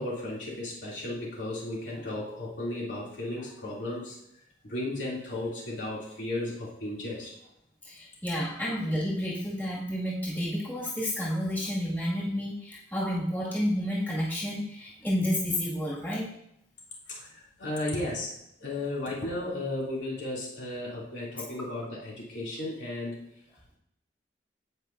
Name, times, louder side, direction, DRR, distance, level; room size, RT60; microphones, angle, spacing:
voice 1, 0.0-4.2 4.6-7.3 8.7-8.8 17.1-18.3 18.6-23.3, left 1 dB, 75° left, -5 dB, 2.9 m, -34 dB
voice 2, 7.8-16.3, equal, 10° left, -7 dB, 2.1 m, -30 dB
16.0 x 5.3 x 2.7 m, 0.78 s
head